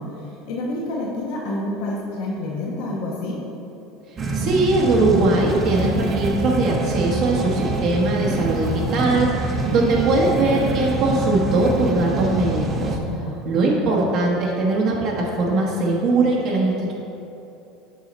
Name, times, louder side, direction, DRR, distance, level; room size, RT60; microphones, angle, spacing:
voice 1, 0.0-3.4 13.1-13.4, left 1 dB, 70° left, -3 dB, 1.0 m, -28 dB
sound 1, 4.2-13.0, right 2 dB, 30° right, 0.6 m, -25 dB
voice 2, 4.3-13.0 13.4-16.9, right 2 dB, 55° right, -3 dB, 1.0 m, -20 dB
6.2 x 4.9 x 4.1 m, 2.9 s
supercardioid pair, 110°, 0 cm